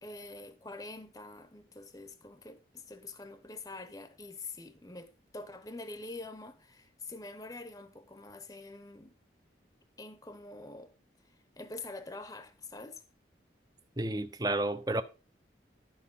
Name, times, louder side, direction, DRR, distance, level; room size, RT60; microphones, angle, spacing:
voice 1, 0.0-9.1 10.0-10.9 11.2-13.0, left 2 dB, 20° left, 0.9 m, -46 dB
voice 2, 14.0-15.0, right 1 dB, 20° right, 0.8 m, -31 dB
12.5 x 5.6 x 5.5 m
head